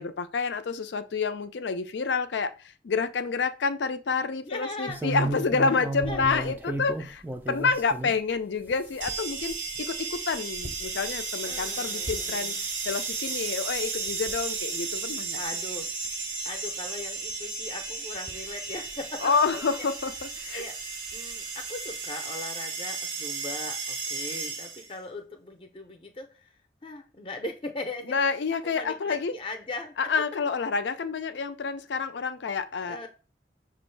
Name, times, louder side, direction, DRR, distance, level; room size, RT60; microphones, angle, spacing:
voice 1, 0.0-12.5 12.8-15.4 19.2-20.6 28.1-29.3 30.0-33.1, left 5 dB, 85° left, 0.5 m, -28 dB
voice 2, 4.4-5.2 6.1-6.4 11.4-12.7 15.3-15.9 16.4-19.9 20.5-20.8 21.1-26.6 26.8-28.2 28.6-30.2 32.8-33.1, left 2 dB, 30° left, 0.6 m, -39 dB
sound 1, 4.9-8.2 8.6-12.8 13.2-13.5 14.1-14.4 14.7-15.0 15.6-15.7 16.1-16.2 17.3-17.4 18.2-19.0 20.1-20.3 20.7-20.8 21.1-21.2, right 2 dB, 10° right, 0.3 m, -35 dB
sound 2, 9.0-25.0, right 4 dB, 90° right, 1.0 m, -34 dB
6.1 x 2.5 x 3.2 m
head